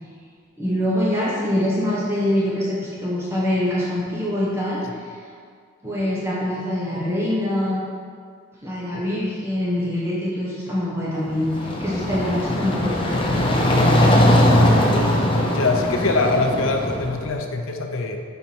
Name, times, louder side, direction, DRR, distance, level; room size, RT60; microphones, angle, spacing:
voice 1, 0.6-5.1 5.8-7.8 8.6-14.1, left 1 dB, 10° right, -7 dB, 1.0 m, -24 dB
sound 1, 11.3-17.3, left 1 dB, 25° left, 0.6 m, -20 dB
voice 2, 15.5-18.2, left 3 dB, 70° left, 4 dB, 0.6 m, -23 dB
7.1 x 4.6 x 4.4 m, 2.1 s
head